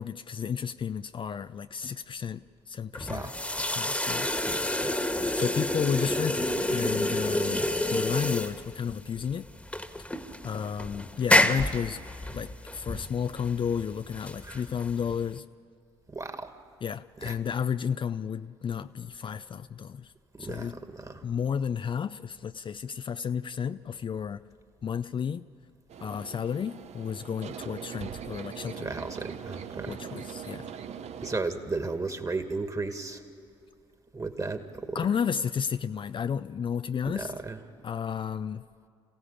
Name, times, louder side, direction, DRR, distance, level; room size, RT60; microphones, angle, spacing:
voice 1, 0.0-3.3 3.7-4.3 5.3-9.5 10.4-12.0 12.3-15.5 16.8-20.1 20.4-20.8 21.2-24.4 24.8-25.5 26.0-28.9 29.9-30.7 34.9-37.3 37.8-38.6, left 7 dB, 40° left, 0.5 m, -32 dB
sound 1, 2.9-15.4, left 1 dB, 10° left, 1.6 m, -29 dB
voice 2, 4.4-5.0 14.4-14.7 16.1-16.5 17.2-17.4 20.3-21.2 28.8-30.0 31.2-33.2 34.1-35.2 37.1-37.7, right 3 dB, 25° right, 2.2 m, -35 dB
sound 2, 25.9-31.4, right 8 dB, 55° right, 1.0 m, -41 dB
27.0 x 16.0 x 8.6 m
hypercardioid pair, 50°, 13 cm